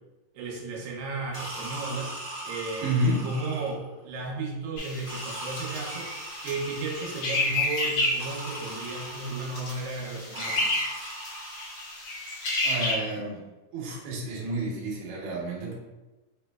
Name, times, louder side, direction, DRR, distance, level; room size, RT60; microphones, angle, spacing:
voice 1, 0.3-2.1 2.4-6.1 6.4-10.8, right 3 dB, 85° right, -2 dB, 2.4 m, -34 dB
sound 1, 1.3-3.9 5.0-7.7 8.2-9.8 10.3-12.0, right 1 dB, 45° right, 0.9 m, -40 dB
voice 2, 2.8-3.3 12.6-13.4 13.7-15.7, right 1 dB, 70° right, -3 dB, 2.1 m, -30 dB
sound 2, 4.8-12.9, left 2 dB, 80° left, 1.1 m, -31 dB
5.2 x 3.0 x 2.2 m, 1.1 s
omnidirectional pair, 4.0 m